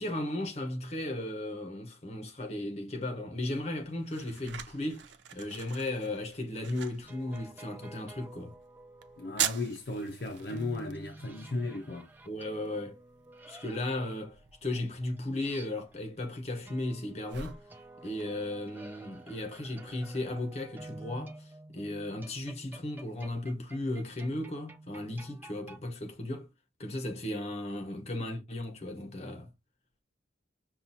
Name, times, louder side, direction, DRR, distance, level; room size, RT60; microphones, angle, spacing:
voice 1, 0.0-5.1 5.3-8.5 12.3-13.0 13.5-17.6 18.0-21.5 21.7-26.5 26.8-29.5, left 1 dB, 35° left, 0.9 m, -35 dB
sound 1, 3.4-20.9, right 10 dB, 75° right, 0.4 m, -44 dB
sound 2, 6.7-9.3 10.5-16.2 16.6-25.8, right 2 dB, 10° right, 0.4 m, -50 dB
voice 2, 9.2-12.1, left 2 dB, 55° left, 0.5 m, -35 dB
5.6 x 2.3 x 2.7 m
head